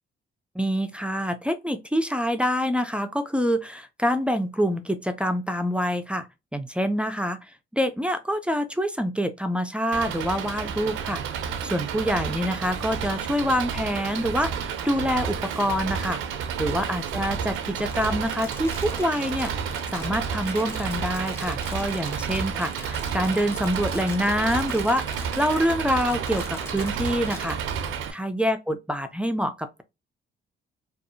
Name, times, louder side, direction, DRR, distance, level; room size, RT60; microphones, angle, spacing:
voice 1, 0.6-6.3 6.5-7.5 7.7-16.2 16.6-19.5 19.9-29.8, equal, 5° right, 0.4 m, -26 dB
Engine, 9.9-28.1, right 7 dB, 85° right, 0.4 m, -31 dB
Crumpling crinkling, 17.5-27.6, left 1 dB, 10° left, 0.8 m, -42 dB
2.6 x 2.4 x 2.5 m
cardioid pair, 90°, 20 cm